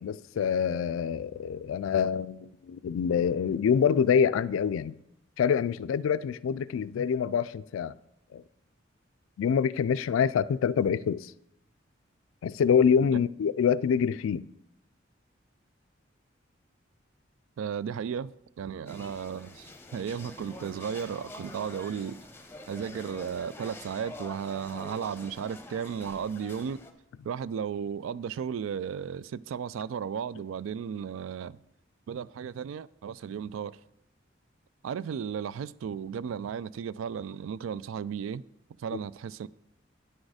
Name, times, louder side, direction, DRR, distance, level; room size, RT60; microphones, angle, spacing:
voice 1, 0.0-5.0 5.4-8.0 8.3-8.4 9.4-11.3 12.4-14.5, left 7 dB, 85° left, 0.3 m, -26 dB
voice 2, 17.6-22.2 22.7-26.8 27.2-31.6 32.1-33.8 34.8-38.4 38.8-39.5, right 7 dB, 90° right, 0.3 m, -34 dB
sound 1, 18.9-26.9, left 1 dB, 10° left, 0.8 m, -46 dB
9.4 x 6.4 x 4.8 m
head